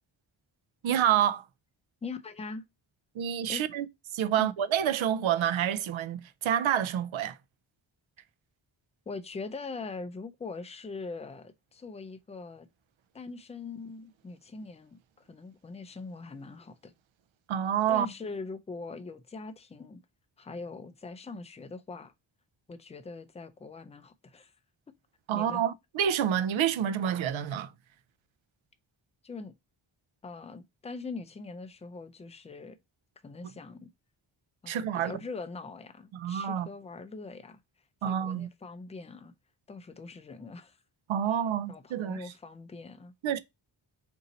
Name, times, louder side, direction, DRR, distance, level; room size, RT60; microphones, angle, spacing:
voice 1, 0.8-1.5 3.1-3.9 4.1-7.4 17.5-18.1 25.3-27.7 34.7-35.2 36.1-36.7 38.0-38.5 41.1-42.3 43.2-43.4, right 9 dB, 80° right, 0.5 m, -28 dB
voice 2, 2.0-2.6 3.5-3.7 4.4-4.5 9.1-12.7 13.1-16.9 17.9-20.0 20.4-22.1 22.7-24.5 25.3-25.6 29.2-29.5 30.2-32.8 33.2-33.9 34.6-37.6 38.0-39.3 39.7-40.8 41.7-43.1, left 3 dB, 15° left, 0.3 m, -42 dB
4.0 x 2.7 x 3.9 m
wide cardioid pair, 165°, 47 cm